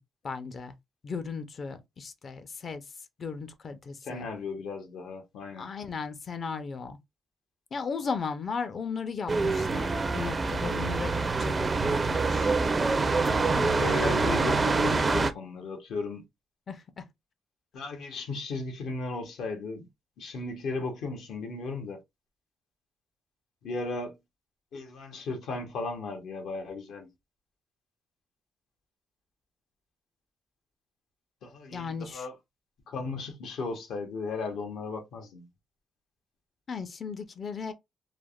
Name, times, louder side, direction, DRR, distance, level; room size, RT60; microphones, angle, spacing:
voice 1, 0.2-0.7 1.0-2.8 3.2-4.3 5.6-7.0 7.7-12.5 16.7-17.0 31.7-32.3 36.7-37.7, left 5 dB, 45° left, 0.5 m, -36 dB
voice 2, 4.0-5.7 13.5-16.2 17.7-19.9 20.2-22.0 23.6-24.1 24.7-27.1 31.4-32.3 32.9-35.5, left 3 dB, 75° left, 0.8 m, -36 dB
sound 1, 9.3-15.3, right 3 dB, 30° right, 0.4 m, -26 dB
3.3 x 2.0 x 2.3 m
cardioid pair, 90°, 0 cm